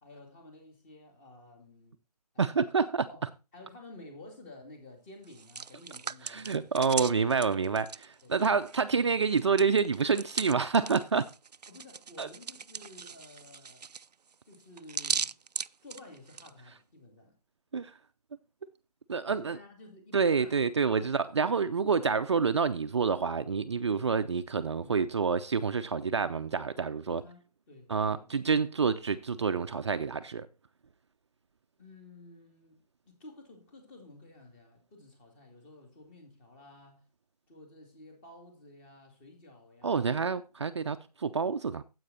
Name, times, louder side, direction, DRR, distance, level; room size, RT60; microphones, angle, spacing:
voice 1, 0.0-2.0 2.3-2.6 3.1-3.2 3.5-6.8 8.2-8.5 11.7-13.9 14.5-15.4 15.8-17.4 19.3-20.6 21.0-21.1 24.8-25.0 27.1-28.3 31.8-37.0 37.5-40.3, left 2 dB, 20° left, 2.4 m, -52 dB
voice 2, 2.4-3.1 6.2-11.3 12.2-12.3 17.7-17.9 19.1-19.6 20.1-27.2 27.9-30.5 39.8-41.8, right 5 dB, 45° right, 0.6 m, -28 dB
Hands, 5.2-8.9 9.2-16.5, right 6 dB, 90° right, 0.4 m, -38 dB
9.9 x 7.9 x 4.1 m
figure-of-eight pair, 155°, 20 cm